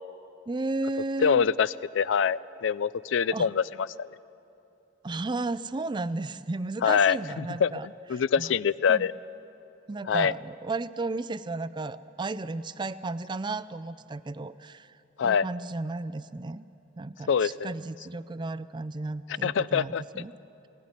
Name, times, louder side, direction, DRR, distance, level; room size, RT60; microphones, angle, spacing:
voice 1, 0.5-1.4 3.3-3.5 5.0-7.9 8.4-8.6 8.9-9.1 9.9-14.9 15.2-16.6 17.0-20.3, right 2 dB, 25° right, 14 dB, 0.4 m, -34 dB
voice 2, 1.2-3.9 6.8-7.7 8.1-9.1 10.1-10.3 15.2-15.5 17.3-17.7 19.4-20.0, left 7 dB, 70° left, 19 dB, 0.4 m, -24 dB
18.5 x 17.0 x 9.6 m, 2.8 s
head